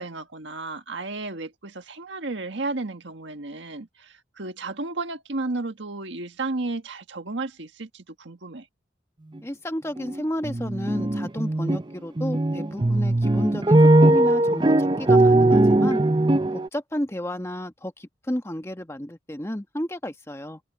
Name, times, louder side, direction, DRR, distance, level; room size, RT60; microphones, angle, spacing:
voice 1, 0.0-8.7, right 2 dB, 70° right, 1.6 m, -33 dB
voice 2, 9.4-16.0 16.5-20.6, equal, 15° left, 1.2 m, -32 dB
sound 1, 10.0-10.2 10.4-11.8 12.2-16.7, right 2 dB, 25° right, 0.6 m, -19 dB
head